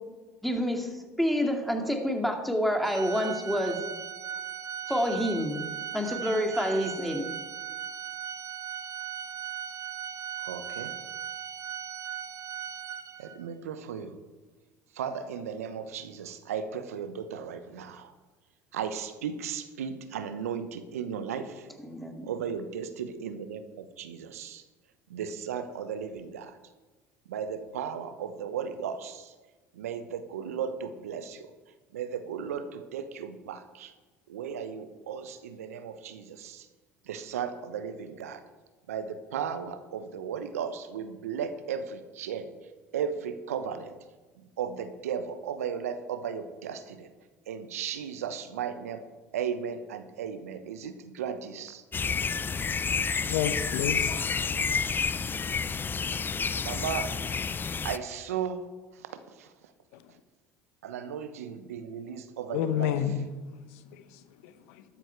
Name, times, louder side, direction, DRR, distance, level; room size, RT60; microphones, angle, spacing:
voice 1, 0.4-3.8 4.9-5.6 5.9-7.3 21.8-22.3, equal, ahead, 2.4 m, -28 dB
Organ, 2.8-13.5, right 9 dB, 40° right, 0.7 m, -38 dB
voice 2, 10.4-10.9 13.2-14.1 14.9-18.1 18.7-21.7 22.2-24.6 25.1-26.6 27.3-29.3 29.7-31.5 31.9-33.9 34.3-36.7 37.1-38.4 38.9-42.5 42.9-44.0 44.6-47.1 47.5-49.0 49.3-51.8 56.6-57.1 57.8-58.7 58.9-59.5 60.8-63.0, right 7 dB, 85° right, 1.0 m, -35 dB
sound 1, 51.9-58.0, left 5 dB, 25° left, 0.6 m, -29 dB
voice 3, 53.2-54.2 59.9-60.0 62.5-63.2 63.7-64.8, left 10 dB, 70° left, 0.9 m, -31 dB
13.0 x 12.5 x 4.6 m
hypercardioid pair, 70°, 8 cm